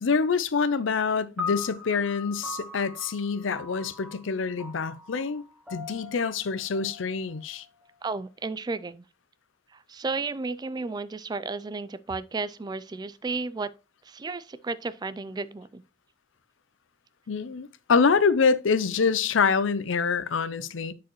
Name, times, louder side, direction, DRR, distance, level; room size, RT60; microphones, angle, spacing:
voice 1, 0.0-5.4 5.7-7.6 17.3-20.9, left 5 dB, 85° left, 0.6 m, -25 dB
sound 1, 1.4-7.8, left 4 dB, 5° right, 1.2 m, -40 dB
voice 2, 8.0-9.0 9.7-13.7 14.1-15.8, right 3 dB, 20° right, 0.3 m, -33 dB
10.0 x 4.7 x 3.0 m
head